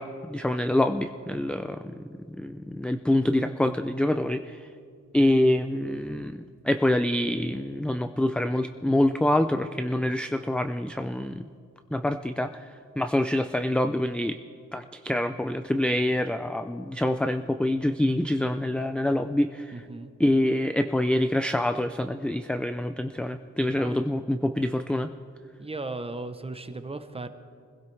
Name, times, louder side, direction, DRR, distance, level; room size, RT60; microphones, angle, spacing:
voice 1, 0.0-1.9 2.4-4.6 5.1-11.4 11.9-14.4 14.7-19.7 20.2-25.1, left 1 dB, 5° left, 8 dB, 0.3 m, -26 dB
voice 2, 19.7-20.1 23.7-24.1 25.6-27.3, right 2 dB, 20° right, 9 dB, 0.7 m, -36 dB
25.0 x 16.0 x 3.2 m, 2.2 s
wide cardioid pair, 160°, 30 cm